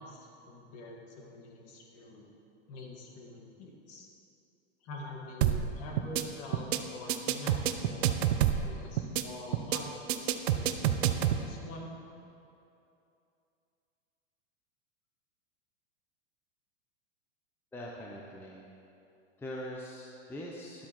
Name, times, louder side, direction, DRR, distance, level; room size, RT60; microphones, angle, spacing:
voice 1, 0.0-2.3 2.7-4.1 4.8-8.2 8.6-11.9, left 1 dB, 45° left, -1 dB, 1.9 m, -46 dB
sound 1, 5.4-5.7 6.0-6.2 6.5-6.8 7.1-8.7 9.0-9.2 9.5-9.8 10.1-11.4, right 11 dB, 65° right, 0.7 m, -27 dB
voice 2, 17.7-18.6 19.4-20.9, equal, 5° left, -3 dB, 0.7 m, -42 dB
12.0 x 8.1 x 3.1 m, 2.7 s
hypercardioid pair, 125°, 34 cm